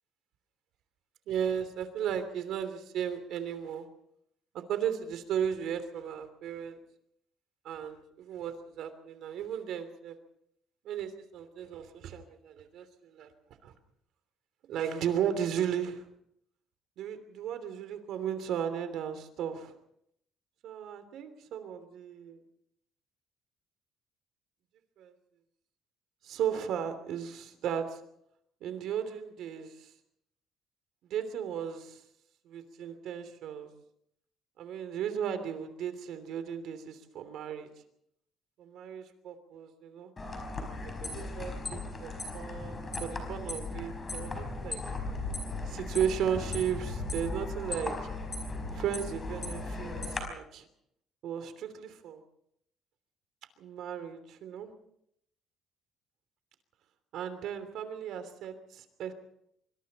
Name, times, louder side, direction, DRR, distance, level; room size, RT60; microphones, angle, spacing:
voice 1, 1.3-3.9 4.5-6.8 7.6-10.2 10.8-13.3 13.6-13.7 14.7-16.1 17.0-19.7 20.6-22.4 25.0-25.1 26.2-28.0 28.6-29.9 31.1-32.0 32.4-33.7 34.6-37.7 38.6-40.1 40.8-44.8 45.7-47.9 48.7-50.7 51.2-52.2 53.6-54.7 57.1-59.1, right 8 dB, 60° right, 9 dB, 3.1 m, -35 dB
sound 1, 40.2-50.2, left 2 dB, 20° left, 4.9 m, -37 dB
26.0 x 24.5 x 4.3 m, 0.73 s
cardioid pair, 170°, 0 cm